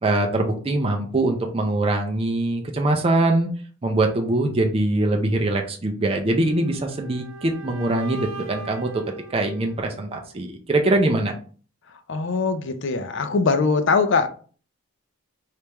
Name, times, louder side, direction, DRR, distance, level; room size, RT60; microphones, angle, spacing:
voice 1, 0.0-3.5 3.8-8.9 9.3-11.3, right 2 dB, 25° right, 0.5 m, -22 dB
sound 1, 6.2-10.3, right 3 dB, 70° right, 0.6 m, -40 dB
voice 2, 12.1-14.3, left 4 dB, 55° left, 0.5 m, -21 dB
3.3 x 3.3 x 2.9 m
head